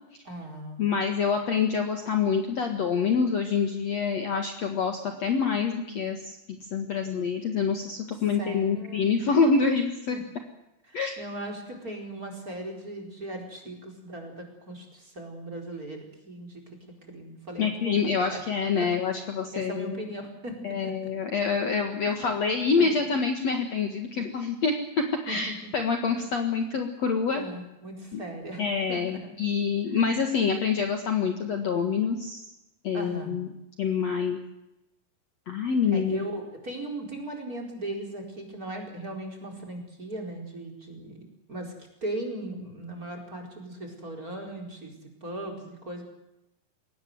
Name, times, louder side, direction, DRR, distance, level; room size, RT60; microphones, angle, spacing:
voice 1, 0.2-0.9 8.4-9.3 10.1-10.2 10.9-16.6 17.1-18.4 18.7-18.9 19.5-20.6 20.8-20.9 22.0-22.2 22.7-23.1 25.3-25.7 26.0-26.3 27.3-28.6 28.9-29.3 29.9-30.1 32.9-33.4 35.9-41.7 42.0-44.9 45.2-46.0, right 1 dB, 20° right, 2 dB, 4.6 m, -38 dB
voice 2, 0.8-6.4 6.7-10.2 10.9-11.1 17.6-20.0 20.6-27.4 28.1-28.2 28.6-32.4 32.8-33.5 33.8-34.4 35.5-36.3, left 5 dB, 50° left, 5 dB, 2.4 m, -26 dB
22.0 x 18.5 x 7.9 m, 0.90 s
omnidirectional pair, 4.6 m